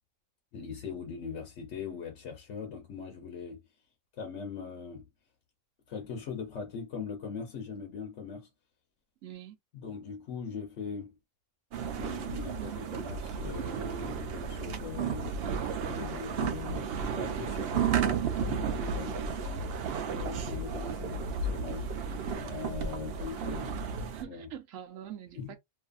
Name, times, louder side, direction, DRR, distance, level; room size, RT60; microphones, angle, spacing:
voice 1, 0.5-3.6 4.2-5.1 5.9-8.5 9.7-11.2 12.0-17.8 18.1-19.7 20.1-21.9 22.4-23.7 24.2-24.5 25.4-25.5, left 5 dB, 70° left, 1.1 m, -41 dB
voice 2, 9.2-9.6 18.9-19.2 21.0-21.4 22.9-23.8 24.1-25.6, right 11 dB, 85° right, 1.0 m, -46 dB
sound 1, 11.7-24.2, right 6 dB, 60° right, 0.7 m, -33 dB
2.7 x 2.5 x 2.3 m
omnidirectional pair, 1.3 m